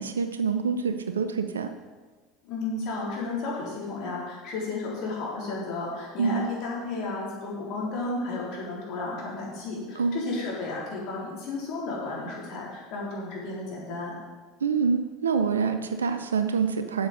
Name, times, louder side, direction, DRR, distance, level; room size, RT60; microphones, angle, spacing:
voice 1, 0.0-1.7 6.2-6.5 10.0-10.4 14.6-17.1, right 5 dB, 75° right, 9 dB, 0.5 m, -26 dB
voice 2, 2.4-14.2, left 3 dB, 50° left, -4 dB, 3.8 m, -33 dB
8.6 x 7.2 x 6.4 m, 1.4 s
figure-of-eight pair, 75°, 0 cm